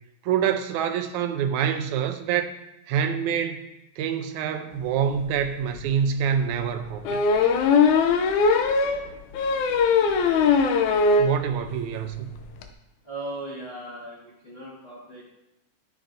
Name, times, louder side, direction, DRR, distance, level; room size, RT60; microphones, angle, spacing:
voice 1, 0.2-2.5 2.9-3.7 4.0-7.2 11.2-12.4, right 8 dB, 85° right, 8 dB, 2.1 m, -26 dB
sound 1, 5.3-5.4 5.8-5.9 7.1-11.4 11.7-11.8 12.1-12.2 12.4-12.6, left 5 dB, 85° left, 2.1 m, -20 dB
voice 2, 13.0-15.3, right 1 dB, 30° left, -6 dB, 1.2 m, -38 dB
13.0 x 6.5 x 2.7 m, 0.89 s
omnidirectional pair, 3.3 m